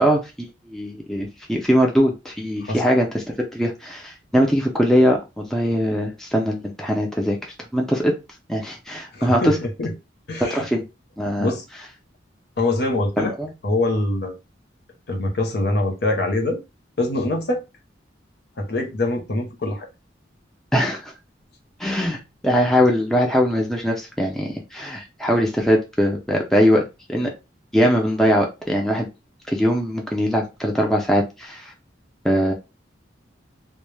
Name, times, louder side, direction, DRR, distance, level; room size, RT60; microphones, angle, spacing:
voice 1, 0.0-8.1 8.5-9.5 10.5-10.8 11.2-11.5 13.2-13.5 20.7-21.0 21.8-26.8 27.1-27.3 27.7-29.1 29.5-31.7 32.2-32.5, equal, ahead, 0.4 m, -21 dB
voice 2, 9.1-9.9 10.3-10.6 11.4-11.6 12.6-13.3 13.6-14.3 15.1-16.6 17.0-17.6 18.6-19.9, left 2 dB, 60° left, 0.6 m, -24 dB
2.1 x 2.0 x 3.1 m
head